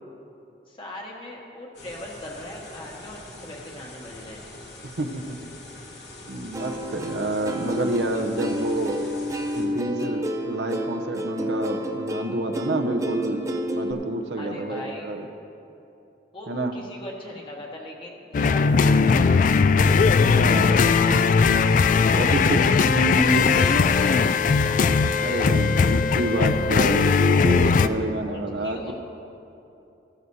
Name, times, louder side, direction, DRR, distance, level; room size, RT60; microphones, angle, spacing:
voice 1, 0.7-4.5 14.4-15.1 16.3-19.5 20.6-21.2 22.2-22.8 23.2-24.9 28.2-28.9, left 1 dB, 30° left, -2 dB, 1.6 m, -39 dB
sound 1, 1.7-9.7, left 2 dB, 75° left, 2.1 m, -43 dB
voice 2, 5.0-5.5 6.3-9.0 9.6-13.5 13.7-15.3 16.5-16.7 20.2-20.7 22.1-23.7 25.2-28.9, right 1 dB, 75° right, 5 dB, 0.8 m, -28 dB
Plucked string instrument, 6.5-13.9, equal, 20° right, 0.6 m, -30 dB
sound 2, 18.3-27.9, left 5 dB, 45° left, 0.3 m, -19 dB
15.5 x 12.5 x 2.7 m, 2.8 s
head